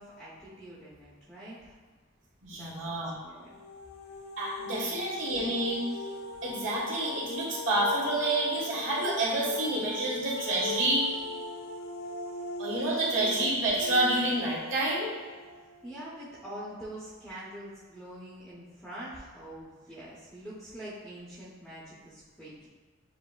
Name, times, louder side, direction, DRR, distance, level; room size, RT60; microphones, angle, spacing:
voice 1, 0.0-1.8 2.5-3.6 4.7-5.0 15.8-22.7, right 1 dB, 5° left, -9 dB, 0.7 m, -45 dB
voice 2, 2.4-3.1 4.4-5.8 6.4-11.1 12.6-15.1, right 1 dB, 65° right, -6 dB, 1.4 m, -28 dB
sound 1, 3.4-16.3, left 2 dB, 80° left, 0.4 m, -40 dB
7.5 x 2.5 x 2.3 m, 1.4 s
head